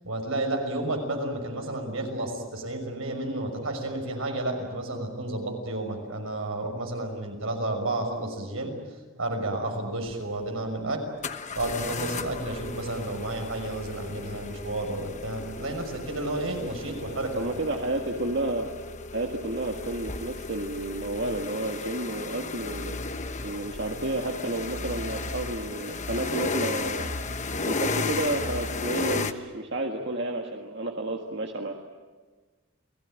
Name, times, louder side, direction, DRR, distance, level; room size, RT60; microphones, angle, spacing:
voice 1, 0.0-8.7 9.2-11.1 11.5-17.4, right 2 dB, 85° right, 3 dB, 6.1 m, -31 dB
sound 1, 10.1-10.2 11.2-29.3, left 3 dB, 35° left, 1.1 m, -34 dB
voice 2, 17.3-18.7 19.1-23.0 23.4-27.1 27.6-31.7, right 2 dB, 55° right, 2 dB, 1.8 m, -31 dB
30.0 x 19.0 x 9.1 m, 1.4 s
head